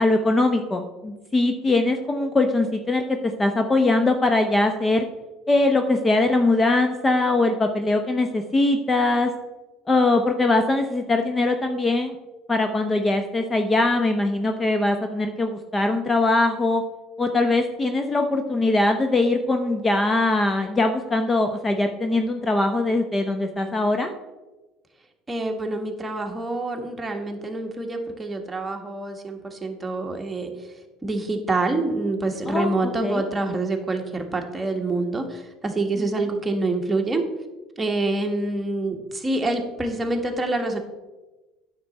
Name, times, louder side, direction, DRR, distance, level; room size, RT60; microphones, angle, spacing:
voice 1, 0.0-5.1 5.5-9.3 9.9-12.1 12.5-16.8 17.2-24.1 32.5-32.7 33.0-33.2, left 2 dB, 20° left, 6 dB, 0.7 m, -21 dB
voice 2, 25.3-30.7 31.0-37.2 37.8-40.8, right 2 dB, 15° right, 2 dB, 1.4 m, -26 dB
9.3 x 6.7 x 4.1 m, 1.1 s
supercardioid pair, 95°, 0 cm